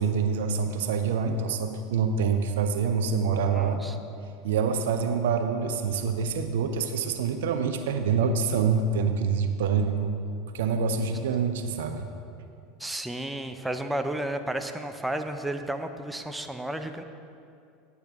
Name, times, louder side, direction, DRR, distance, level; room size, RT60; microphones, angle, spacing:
voice 1, 0.0-3.8 4.4-10.1 10.5-12.1, right 5 dB, 75° right, 7 dB, 0.6 m, -26 dB
voice 2, 3.5-4.0 12.8-17.0, right 1 dB, 5° right, 6 dB, 0.6 m, -32 dB
9.9 x 8.4 x 3.6 m, 2.5 s
hypercardioid pair, 90°, 0 cm